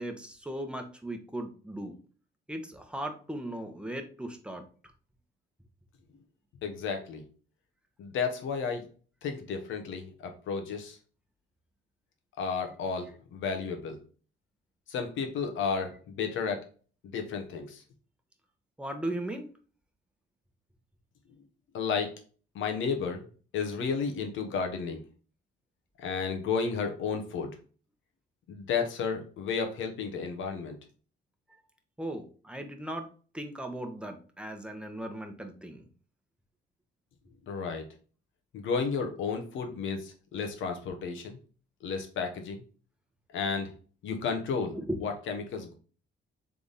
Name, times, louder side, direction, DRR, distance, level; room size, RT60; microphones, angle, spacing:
voice 1, 0.0-2.0 2.5-4.6 18.8-19.5 32.0-33.1 33.3-35.8 44.6-45.0, right 1 dB, 5° right, 5 dB, 0.9 m, -37 dB
voice 2, 6.6-7.2 8.0-8.9 9.2-11.0 12.4-14.0 14.9-16.7 17.0-17.8 21.7-22.1 22.5-23.2 23.5-25.0 26.0-27.5 28.5-30.8 37.5-37.8 38.5-41.4 41.8-42.6 43.3-43.7 44.0-45.7, left 5 dB, 80° left, 5 dB, 1.0 m, -32 dB
3.5 x 3.4 x 4.0 m, 0.40 s
cardioid pair, 90°, 20 cm